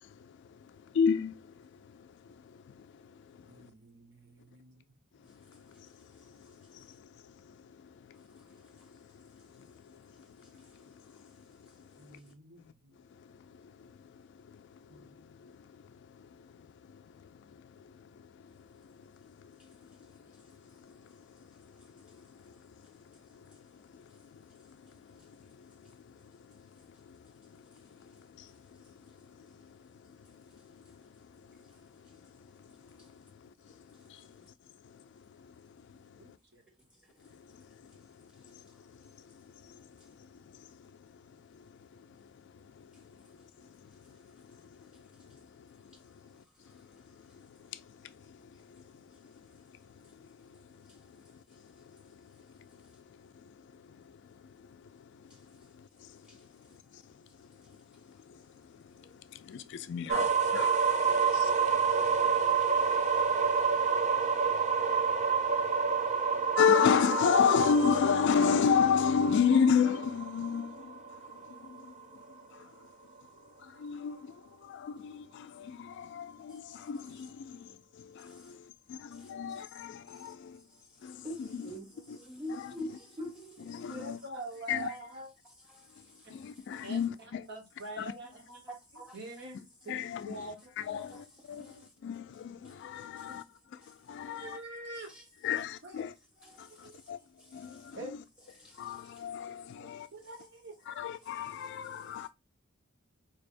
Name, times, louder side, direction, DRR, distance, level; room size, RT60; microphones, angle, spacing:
voice 1, 0.7-3.4 5.5-6.0 6.3-8.5 8.9-11.7 12.1-12.2 13.5-14.2 14.5-15.8 16.1-16.7 16.9-17.0 17.5-18.1 18.4-18.7 19.2-20.3 20.8-21.2 21.7-22.5 23.3-24.0 24.3-26.1 26.5-26.7 27.1-27.2 27.5-28.5 29.3-29.8 30.3-30.4 30.7-30.8 31.5-31.7 32.2-32.3 32.6-32.7 33.0-33.2 33.9-34.3 34.8-35.0 35.4-35.5 37.3-37.4 37.8-37.9 38.2-38.4 39.3-40.9 41.5-41.6 42.5-44.2 44.4-45.9 46.2-46.4 46.9-47.0 47.5-48.8 49.2-49.3 50.0-50.1 50.4-50.6 52.1-52.3 52.7-52.8 53.5-54.2 54.4-54.9 55.2-56.5 56.9-57.0 57.4-57.8 58.1-58.4 58.7-60.3 60.5-62.4 62.8-63.6 64.0-64.7 64.9-65.2 65.6-71.0 71.3-71.9 72.5-72.7 73.6-80.6 81.0-81.7 82.1-82.2 82.6-82.7 83.7-84.2 84.7-84.9 86.3-87.4 88.0-88.1 89.9-90.4 90.8-91.8 92.0-93.4 93.9-94.6 95.4-96.1 96.6-97.2 97.5-98.0 98.8-100.1 100.9-102.3, left 7 dB, 60° left, 0.3 m, -34 dB
voice 2, 3.4-4.8 12.0-13.0 14.9-15.2 34.4-34.5 36.2-36.6 60.1-60.3 83.9-85.3 86.2-86.4 86.8-88.6 89.1-90.0 90.2-90.9 91.5-91.8 93.0-93.4 94.2-95.1 95.5-96.1 96.7-97.0 97.9-98.1 99.8-101.0, right 2 dB, 55° right, 1.2 m, -46 dB
sound 1, 60.1-71.9, right 5 dB, 35° right, 0.4 m, -29 dB
voice 3, 76.5-77.3 78.2-78.5 79.1-79.8 80.1-80.3 80.7-80.8 81.2-83.9 85.7-86.8 88.7-89.2 90.9-91.9 93.2-93.4 93.8-93.9 95.1-95.2 96.4-97.1 97.4-98.0 98.6-99.2 101.6-101.7 102.1-102.2, equal, 5° right, 1.7 m, -48 dB
4.4 x 3.2 x 2.5 m
head